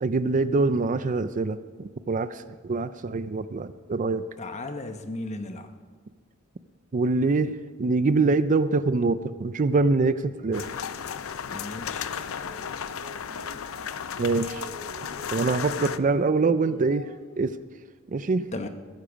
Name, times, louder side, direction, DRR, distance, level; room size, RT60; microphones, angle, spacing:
voice 1, 0.0-4.3 6.9-10.7 14.2-14.7 15.3-17.1 17.4-17.6 18.1-18.5, right 3 dB, 40° right, 13 dB, 0.4 m, -24 dB
voice 2, 4.4-5.7 11.5-12.1 18.5-18.7, left 2 dB, 35° left, 7 dB, 1.0 m, -35 dB
sound 1, 10.5-16.0, left 7 dB, 80° left, 0.5 m, -34 dB
sound 2, 11.7-17.5, equal, 75° right, 2.6 m, -47 dB
20.5 x 10.0 x 5.1 m, 1.5 s
head